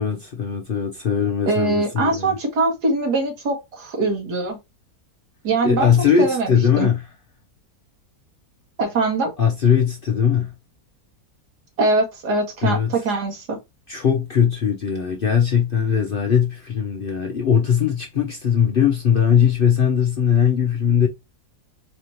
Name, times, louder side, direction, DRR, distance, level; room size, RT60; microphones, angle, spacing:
voice 1, 0.0-2.3 5.6-7.0 9.4-10.5 12.6-12.9 13.9-21.1, left 8 dB, 55° left, 0.6 m, -20 dB
voice 2, 1.5-4.6 5.4-5.9 6.2-6.9 8.8-9.3 11.8-13.6, right 3 dB, 90° right, 2.0 m, -22 dB
4.2 x 2.7 x 3.0 m
omnidirectional pair, 1.7 m